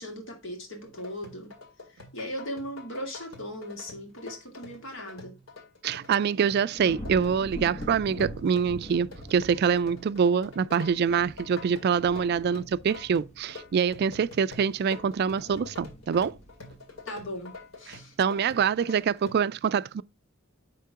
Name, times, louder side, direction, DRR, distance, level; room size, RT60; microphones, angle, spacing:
voice 1, 0.0-1.5 1.9-5.3 17.0-18.2, equal, 65° left, 2.4 m, -38 dB
sound 1, 0.8-19.3, left 3 dB, 85° left, 2.2 m, -47 dB
voice 2, 5.8-16.4 17.9-20.0, right 7 dB, 50° right, 0.3 m, -25 dB
sound 2, 6.7-18.0 18.5-18.9, equal, 35° left, 1.6 m, -44 dB
10.0 x 3.7 x 3.6 m
head